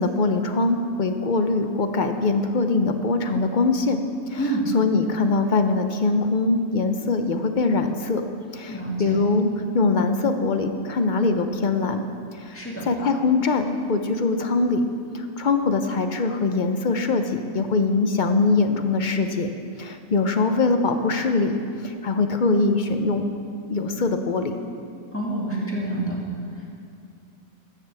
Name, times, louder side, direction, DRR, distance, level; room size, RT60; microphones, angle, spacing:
voice 1, 0.0-4.4 4.7-8.2 8.5-9.5 9.7-12.0 12.3-12.6 12.9-14.9 15.1-19.5 19.8-23.3 23.7-24.5, left 3 dB, 50° left, 7 dB, 0.6 m, -22 dB
voice 2, 8.7-9.2 12.5-12.9 25.1-26.2 26.5-26.8, right 1 dB, 10° left, -4 dB, 2.1 m, -28 dB
15.5 x 12.5 x 3.4 m, 2.4 s
omnidirectional pair, 1.5 m